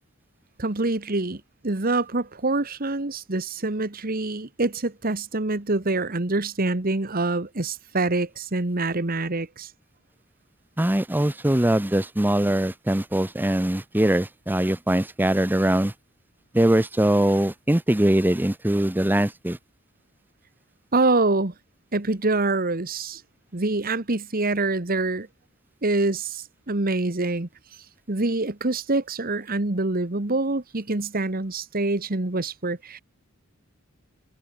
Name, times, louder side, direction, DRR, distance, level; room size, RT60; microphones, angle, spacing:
voice 1, 0.6-9.7 20.9-21.5 21.9-23.2 23.5-25.3 25.8-27.5 28.1-33.0, right 2 dB, 45° right, 1.5 m, -25 dB
voice 2, 10.8-15.9 16.5-19.6, right 1 dB, 10° right, 0.7 m, -22 dB
head